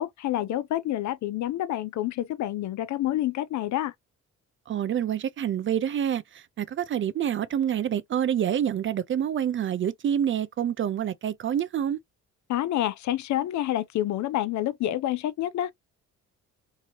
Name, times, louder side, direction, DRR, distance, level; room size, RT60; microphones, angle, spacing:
voice 1, 0.0-3.9 12.5-15.7, left 13 dB, 70° left, 0.6 m, -28 dB
voice 2, 4.7-12.0, right 9 dB, 40° right, 0.4 m, -27 dB
2.9 x 2.7 x 2.9 m
cardioid pair, 90°, 30 cm